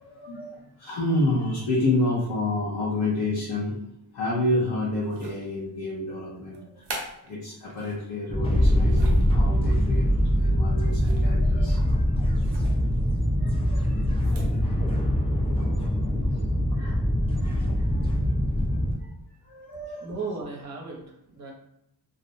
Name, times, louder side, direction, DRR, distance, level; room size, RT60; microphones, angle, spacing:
voice 1, 0.0-6.8 7.2-12.2 13.4-14.8 15.3-16.0 16.8-17.1 17.4-18.2 19.0-19.1 19.4-20.1, left 2 dB, 80° left, -6 dB, 0.7 m, -30 dB
sound 1, 5.0-5.7 6.5-8.1 8.6-9.3 10.9-11.4 11.7-11.8 12.4-12.8 14.1-14.6, right 2 dB, 90° right, 0.7 m, -42 dB
sound 2, 8.3-18.9, equal, 15° left, 0.3 m, -23 dB
voice 2, 20.0-21.5, right 4 dB, 40° right, -1 dB, 0.7 m, -35 dB
2.5 x 2.0 x 2.6 m, 0.79 s
wide cardioid pair, 120°, 40 cm